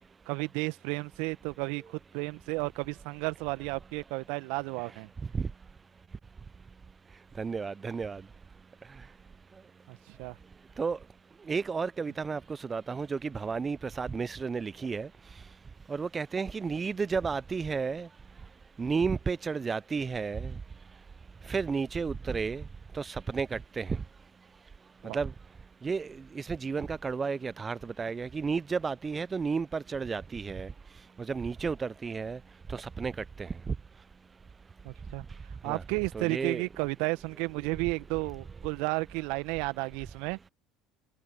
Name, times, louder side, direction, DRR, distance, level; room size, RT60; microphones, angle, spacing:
voice 1, 0.3-5.1 9.9-10.4 25.0-25.2 34.8-35.2 35.6-40.4, right 27 dB, 65° right, 1.5 m, -33 dB
voice 2, 7.4-8.2 10.8-11.0 11.5-15.1 15.9-18.1 18.8-20.5 21.5-22.6 22.9-23.9 25.1-25.3 25.8-26.1 26.4-30.7 31.3-32.4 32.7-33.1 33.4-33.7 35.7-35.8 36.1-36.6, right 5 dB, 25° right, 0.6 m, -32 dB
hypercardioid pair, 65°, 0 cm